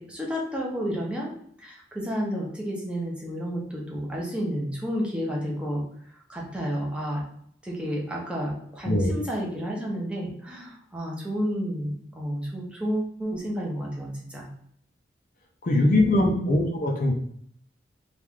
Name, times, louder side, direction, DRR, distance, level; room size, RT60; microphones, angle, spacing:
voice 1, 0.0-1.3 1.6-5.8 6.1-7.2 7.6-14.5 15.9-16.7, equal, 5° right, -3 dB, 0.7 m, -31 dB
voice 2, 15.6-17.1, left 1 dB, 45° left, 1 dB, 0.5 m, -22 dB
3.1 x 2.4 x 3.5 m, 0.67 s
head